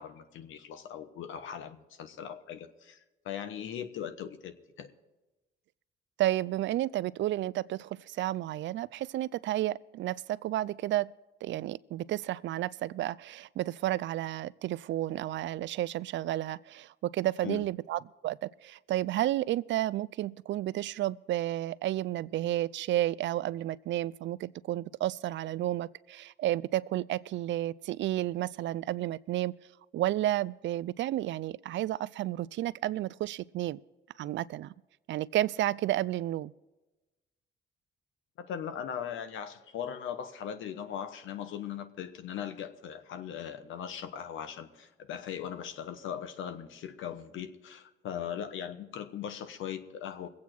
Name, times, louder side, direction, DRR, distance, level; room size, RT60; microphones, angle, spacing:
voice 1, 0.0-3.0 3.2-4.9 17.4-17.6 38.4-50.3, left 9 dB, 80° left, 1.1 m, -39 dB
voice 2, 6.2-11.1 11.4-29.5 29.9-33.8 34.2-34.7 35.1-36.5, right 14 dB, 70° right, 0.4 m, -31 dB
21.5 x 8.5 x 4.5 m
cardioid pair, 90°, 20 cm